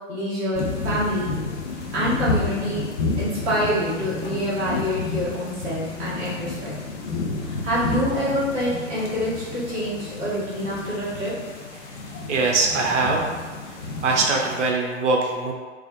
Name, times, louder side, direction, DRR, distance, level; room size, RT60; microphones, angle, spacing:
voice 1, 0.1-1.3 1.9-2.9 3.2-6.7 7.4-11.3, equal, 15° right, -10 dB, 0.4 m, -26 dB
sound 1, 0.5-14.7, left 3 dB, 60° left, 0.6 m, -31 dB
voice 2, 12.3-13.3 14.0-15.5, right 3 dB, 65° right, 0 dB, 0.5 m, -22 dB
2.4 x 2.1 x 2.5 m, 1.4 s
figure-of-eight pair, 110°, 39 cm